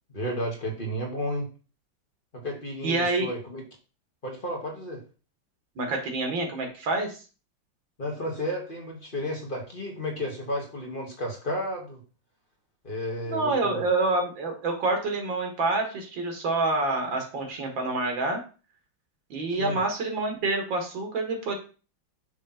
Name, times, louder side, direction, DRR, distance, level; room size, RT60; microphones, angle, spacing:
voice 1, 0.1-1.5 2.3-3.6 4.2-5.0 8.0-12.0 12.8-13.8 19.5-19.8, equal, 30° left, 0 dB, 1.5 m, -32 dB
voice 2, 2.8-3.3 5.8-7.2 13.3-18.4 19.3-21.5, right 2 dB, 80° right, 3 dB, 2.3 m, -27 dB
6.4 x 3.3 x 5.6 m, 0.35 s
omnidirectional pair, 2.1 m